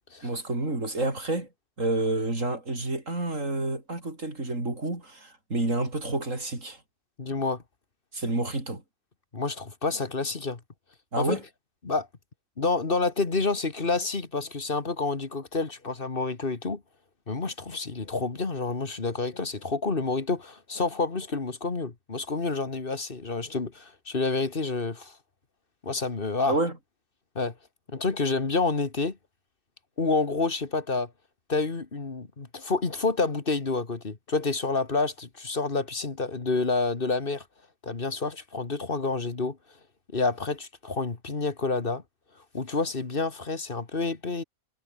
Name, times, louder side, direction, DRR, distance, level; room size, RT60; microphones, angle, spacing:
voice 1, 0.2-1.5 1.8-6.8 8.1-8.8 11.1-11.4 26.5-26.7, right 2 dB, 60° right, 5.9 m, -29 dB
voice 2, 7.2-7.6 9.3-10.6 11.2-11.4 11.8-12.1 12.6-16.8 17.3-25.2 25.8-26.6 27.4-27.5 27.9-29.2 30.0-31.1 31.5-37.5 37.8-39.6 40.1-42.0 42.5-44.4, left 3 dB, 40° left, 2.1 m, -28 dB
omnidirectional pair, 1.5 m